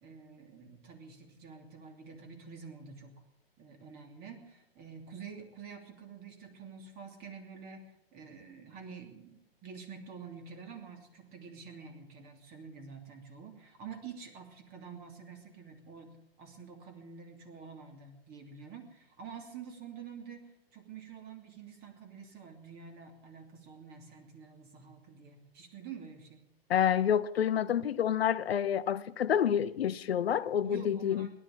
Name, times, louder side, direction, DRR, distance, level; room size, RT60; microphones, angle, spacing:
voice 1, 0.0-3.2 3.6-26.5 30.6-31.3, right 6 dB, 30° right, 2.9 m, -48 dB
voice 2, 26.7-31.3, left 9 dB, 85° left, 0.8 m, -28 dB
17.0 x 11.0 x 7.3 m
hypercardioid pair, 130°, 30 cm